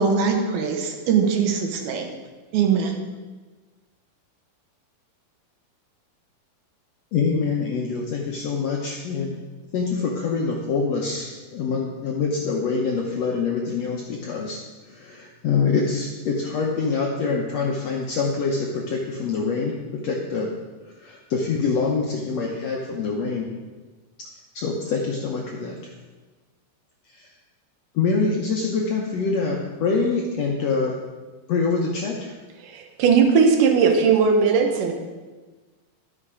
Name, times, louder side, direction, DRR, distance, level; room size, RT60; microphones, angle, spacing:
voice 1, 0.0-2.1 2.5-2.9, right 6 dB, 85° right, 3 dB, 3.0 m, -22 dB
voice 2, 7.1-9.4 9.7-14.6 14.8-20.5 21.0-23.5 24.5-25.9 27.1-27.3 27.9-30.9 31.5-32.3, left 4 dB, 80° left, -1 dB, 1.4 m, -25 dB
voice 3, 32.7-34.9, right 5 dB, 70° right, 3 dB, 2.5 m, -18 dB
12.0 x 6.7 x 4.9 m, 1.3 s
omnidirectional pair, 4.2 m